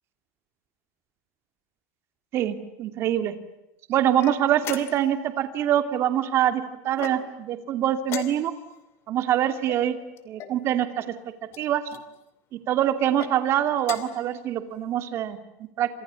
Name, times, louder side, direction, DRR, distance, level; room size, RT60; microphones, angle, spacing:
voice 1, 2.3-3.3 3.9-8.5 9.1-10.0 10.3-11.1 11.6-11.8 12.5-15.9, right 11 dB, 35° right, 9 dB, 2.6 m, -24 dB
sound 1, 4.2-5.2 6.9-7.5 8.0-8.8 9.7-10.6 11.5-12.1 13.0-13.3 13.8-14.3, left 10 dB, 35° left, 2.6 m, -38 dB
30.0 x 27.5 x 7.1 m, 0.92 s
cardioid pair, 175°, 8 cm